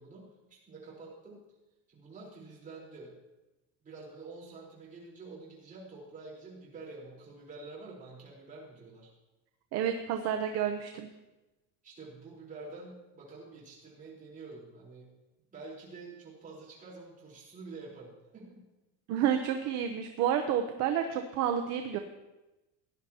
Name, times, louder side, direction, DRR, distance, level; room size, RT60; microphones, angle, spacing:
voice 1, 0.0-1.4 1.9-3.2 3.8-9.1 11.8-15.2 15.5-18.7, right 3 dB, 20° right, -5 dB, 4.1 m, -48 dB
voice 2, 9.7-11.1 19.1-22.0, right 9 dB, 45° right, 5 dB, 0.8 m, -30 dB
17.0 x 10.5 x 2.9 m, 1.0 s
cardioid pair, 160°, 37 cm